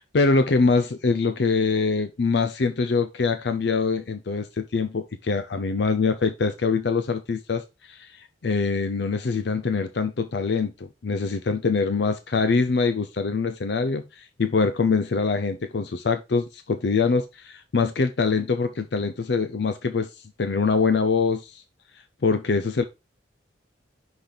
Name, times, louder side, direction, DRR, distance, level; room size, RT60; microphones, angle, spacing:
voice 1, 0.0-20.1 20.4-21.6 22.2-22.8, left 4 dB, 65° left, 0.5 m, -24 dB
5.8 x 5.1 x 3.8 m
head